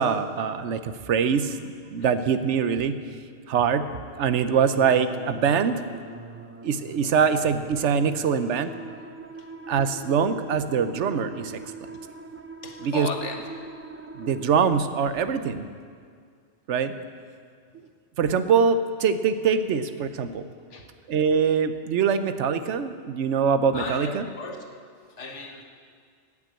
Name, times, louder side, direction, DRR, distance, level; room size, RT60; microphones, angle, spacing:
voice 1, 0.0-1.6 1.9-3.0 3.5-3.9 4.2-5.7 6.6-8.7 9.7-11.6 12.8-13.1 14.1-15.7 16.7-16.9 18.2-20.5 21.1-24.3, right 6 dB, 80° right, 11 dB, 1.0 m, -23 dB
sound 1, 4.5-14.5, right 3 dB, 20° right, 0.4 m, -42 dB
voice 2, 12.6-13.4 15.0-15.1 20.7-20.8 23.7-24.6 25.2-25.6, left 3 dB, 90° left, 3 dB, 1.6 m, -35 dB
16.5 x 6.1 x 8.8 m, 2.1 s
omnidirectional pair, 1.2 m